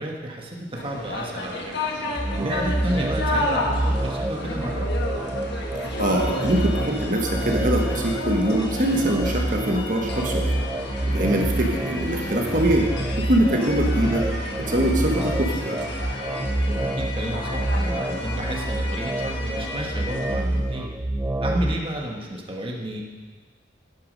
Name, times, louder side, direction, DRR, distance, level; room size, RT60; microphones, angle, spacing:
voice 1, 0.0-1.7 2.4-4.9 13.6-13.7 16.7-20.9 21.4-23.0, right 1 dB, 30° right, -1 dB, 1.3 m, -32 dB
sound 1, 0.7-20.6, left 2 dB, 65° left, 1.6 m, -32 dB
sound 2, 2.2-21.8, right 1 dB, 15° right, 0.4 m, -27 dB
voice 2, 6.0-10.6 11.1-12.9 13.2-14.3 14.7-15.8, right 1 dB, 50° right, 1 dB, 1.3 m, -23 dB
12.0 x 9.5 x 5.3 m, 1.4 s
head